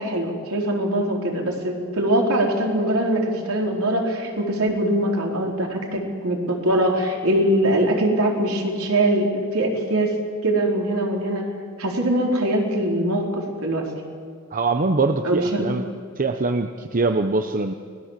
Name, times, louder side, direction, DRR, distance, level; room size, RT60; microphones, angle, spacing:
voice 1, 0.0-10.2 10.4-11.4 11.8-13.9 15.2-15.7, right 1 dB, 70° right, 0 dB, 4.5 m, -22 dB
voice 2, 14.5-15.8 16.2-17.7, right 3 dB, 40° right, 7 dB, 0.9 m, -23 dB
29.5 x 21.0 x 7.6 m, 2.1 s
head